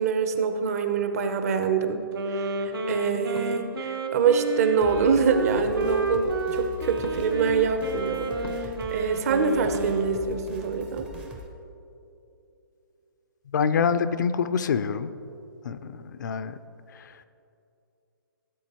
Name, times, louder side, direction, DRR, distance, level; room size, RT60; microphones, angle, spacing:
voice 1, 0.0-2.0 2.3-8.3 8.6-11.1, right 5 dB, 40° right, 8 dB, 0.7 m, -25 dB
sound 1, 1.6-1.8 3.3-3.7 5.5-5.7 7.0-7.2 8.4-8.8 9.7-9.9, left 4 dB, 85° left, 0.7 m, -42 dB
Wind instrument woodwind instrument, 2.1-10.3, right 3 dB, 80° right, 1.2 m, -31 dB
sound 2, 4.8-11.5, left 1 dB, 10° right, 0.5 m, -41 dB
voice 2, 13.5-15.1 15.6-16.6 16.9-17.2, left 6 dB, 55° left, 12 dB, 0.4 m, -26 dB
14.5 x 7.3 x 2.9 m, 2.7 s
hypercardioid pair, 155°, 12 cm